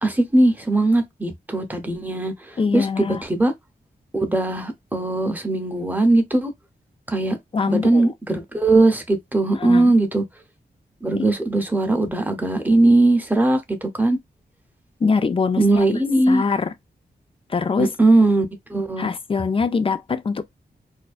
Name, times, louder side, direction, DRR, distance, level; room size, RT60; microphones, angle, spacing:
voice 1, 0.0-2.3 2.7-3.5 4.1-6.5 7.1-7.4 7.7-10.2 11.0-14.2 15.6-16.4 17.8-19.1, right 2 dB, 10° right, 0.7 m, -19 dB
voice 2, 2.6-3.2 7.5-8.1 9.6-9.9 11.2-11.3 15.0-15.8 16.3-16.7 17.5-17.9 19.0-20.4, left 5 dB, 30° left, 0.4 m, -23 dB
2.5 x 2.1 x 2.3 m
cardioid pair, 70°, 17 cm